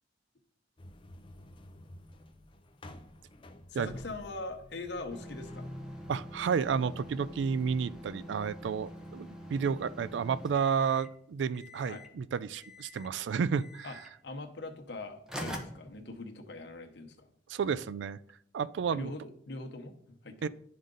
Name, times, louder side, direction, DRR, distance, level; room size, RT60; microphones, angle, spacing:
sound 1, 0.8-10.5, left 1 dB, 30° left, 0.5 m, -51 dB
voice 1, 3.7-5.7 11.9-12.1 13.8-14.0 14.2-17.3 18.9-20.5, left 2 dB, 70° left, 4 dB, 0.9 m, -42 dB
sound 2, 5.1-11.2 11.5-12.2 12.5-13.2 13.5-14.1 14.9-15.0 15.3-16.6, equal, 5° right, 0.8 m, -45 dB
voice 2, 6.1-14.0 17.5-18.2 18.5-19.1 20.4-20.5, right 6 dB, 80° right, 17 dB, 0.3 m, -31 dB
11.0 x 3.9 x 3.8 m, 0.67 s
head